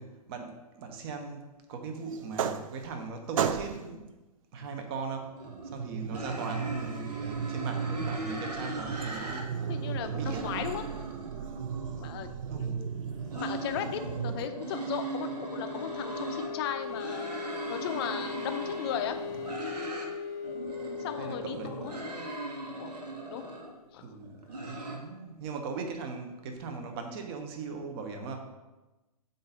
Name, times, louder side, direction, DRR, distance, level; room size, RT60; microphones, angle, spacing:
voice 1, 0.0-4.1 4.5-5.4 5.6-9.5 10.0-10.5 12.5-12.9 21.2-21.8 24.0-28.4, right 4 dB, 40° right, 4 dB, 0.9 m, -39 dB
sound 1, 2.1-3.0 3.3-4.0 5.1-14.5, right 7 dB, 55° right, 0.4 m, -35 dB
sound 2, 5.4-5.7 6.1-9.4 9.8-12.3 13.1-16.5 16.9-20.1 20.4-23.7 24.2-25.0, right 2 dB, 80° right, 1.3 m, -39 dB
voice 2, 9.7-10.8 12.0-12.3 12.5-12.9 13.3-17.3 17.7-19.2 21.0-21.9 22.8-22.9 23.3-23.5 23.9-24.1, left 10 dB, 40° left, 7 dB, 0.6 m, -36 dB
sound 3, 11.4-23.9, left 6 dB, 70° left, 0.9 m, -41 dB
7.6 x 2.6 x 5.5 m, 1.1 s
hypercardioid pair, 135°, 20 cm